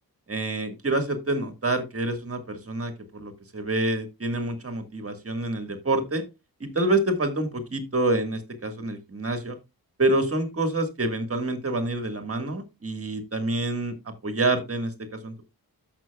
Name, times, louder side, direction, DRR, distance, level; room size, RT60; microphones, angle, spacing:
voice 1, 0.3-6.2 6.6-9.6 10.0-15.4, right 2 dB, 40° right, 8 dB, 1.7 m, -27 dB
13.5 x 6.2 x 2.3 m, 0.25 s
wide cardioid pair, 135°, 37 cm